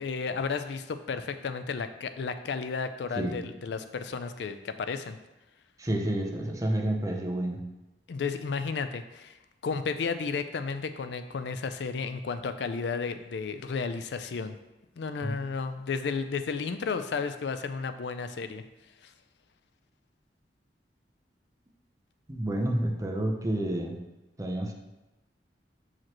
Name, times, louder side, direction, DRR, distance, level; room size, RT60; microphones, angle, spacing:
voice 1, 0.0-5.2 8.1-9.4 9.6-14.5 15.0-18.6 19.0-19.1, left 5 dB, 70° left, 10 dB, 0.4 m, -33 dB
voice 2, 5.8-7.6 15.2-15.3 22.3-24.0 24.4-24.7, right 1 dB, 20° right, 1 dB, 0.7 m, -29 dB
7.4 x 4.9 x 3.0 m, 0.99 s
head